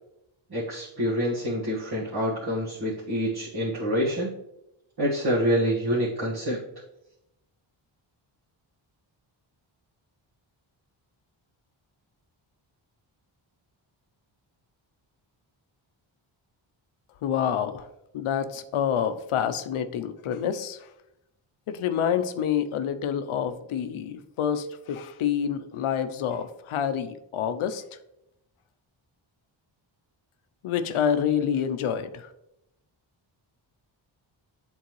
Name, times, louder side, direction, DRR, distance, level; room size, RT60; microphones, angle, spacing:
voice 1, 0.5-4.3 5.0-6.6, equal, 50° right, -8 dB, 1.6 m, -26 dB
voice 2, 17.2-17.9 18.1-20.8 21.7-27.8 30.6-32.3, left 8 dB, 80° left, 10 dB, 0.6 m, -27 dB
8.2 x 3.7 x 3.1 m, 0.85 s
cardioid pair, 90°, 49 cm